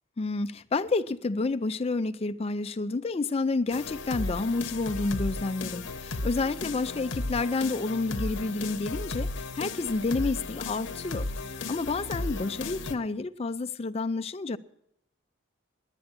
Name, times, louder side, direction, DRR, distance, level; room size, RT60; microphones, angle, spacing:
voice 1, 0.2-11.3 11.7-14.6, left 3 dB, 30° left, 0.4 m, -29 dB
sound 1, 3.7-12.9, left 3 dB, 65° left, 0.9 m, -35 dB
10.5 x 9.8 x 9.6 m
head